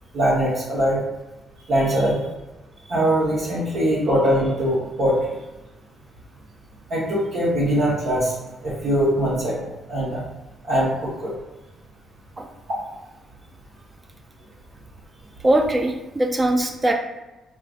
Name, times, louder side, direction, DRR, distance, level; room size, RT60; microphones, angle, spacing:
voice 1, 0.1-1.0 1.7-2.2 2.9-5.3 6.9-8.3 8.6-10.2 10.6-11.3, equal, 65° right, -8 dB, 1.1 m, -22 dB
voice 2, 15.4-16.9, right 1 dB, 25° right, 3 dB, 0.5 m, -21 dB
4.6 x 2.4 x 2.5 m, 1.1 s
cardioid pair, 90°, 0 cm